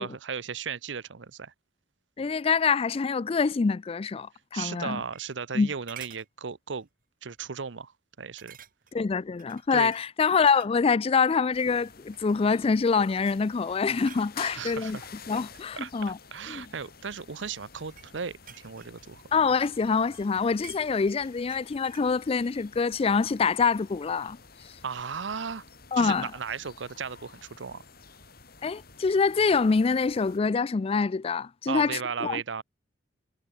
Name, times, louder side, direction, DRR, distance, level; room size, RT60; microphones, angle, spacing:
voice 1, 0.0-1.5 4.5-6.9 7.2-7.9 8.2-8.6 9.7-9.9 14.4-15.1 15.8-15.9 16.3-19.2 24.8-25.6 26.0-27.8 31.7-32.6, right 6 dB, 85° right, 0.8 m, -35 dB
voice 2, 2.2-5.0 5.5-5.7 8.9-15.0 15.3-16.2 16.5-16.7 19.3-24.4 25.9-26.3 28.6-32.4, left 5 dB, 30° left, 0.4 m, -25 dB
sound 1, 4.7-5.6 5.9-6.3 6.8-7.0 7.3-7.4 8.4-9.0 9.4-11.0 11.5-11.7 12.1-12.7 13.2-13.4 13.7-14.3 15.0-16.6 17.4-19.9 20.1-22.2 22.4-22.5, right 9 dB, 50° right, 6.1 m, -51 dB
sound 2, 11.5-30.4, left 5 dB, 55° left, 5.4 m, -51 dB
head